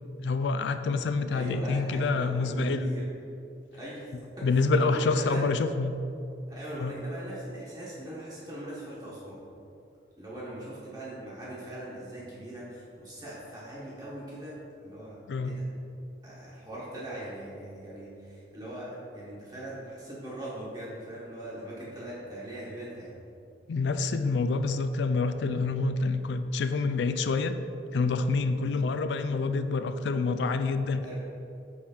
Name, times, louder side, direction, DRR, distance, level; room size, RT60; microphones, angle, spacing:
voice 1, 0.2-2.9 4.4-6.0 6.8-6.9 15.3-15.6 23.7-27.6 27.9-31.0, left 3 dB, 75° left, 10 dB, 0.3 m, -27 dB
voice 2, 1.3-3.0 3.7-4.0 4.4-5.5 6.5-9.4 10.2-15.2 15.4-15.6 16.2-23.1 31.0-31.2, right 1 dB, 25° right, -8 dB, 1.1 m, -40 dB
5.6 x 4.6 x 4.3 m, 2.6 s
head